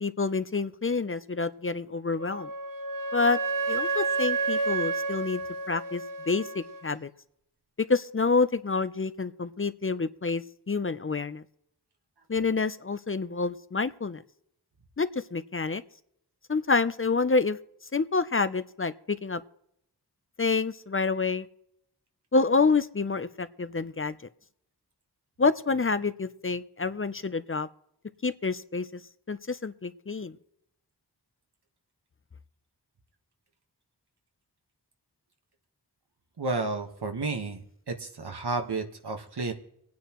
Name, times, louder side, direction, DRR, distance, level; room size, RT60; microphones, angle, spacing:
voice 1, 0.0-2.5 3.1-3.4 3.7-5.4 5.7-7.1 7.9-11.4 12.3-14.2 15.0-15.8 16.5-17.6 17.9-19.4 20.4-21.5 22.3-24.1 25.4-27.7 28.2-29.0 29.3-30.4, left 4 dB, 35° left, 13 dB, 0.5 m, -28 dB
Wind instrument woodwind instrument, 2.2-6.8, right 3 dB, 55° right, 0.8 m, -30 dB
voice 2, 36.4-37.6 37.9-39.5, right 3 dB, 75° right, 5 dB, 1.5 m, -31 dB
25.5 x 9.5 x 3.0 m, 0.75 s
wide cardioid pair, 60°, 39 cm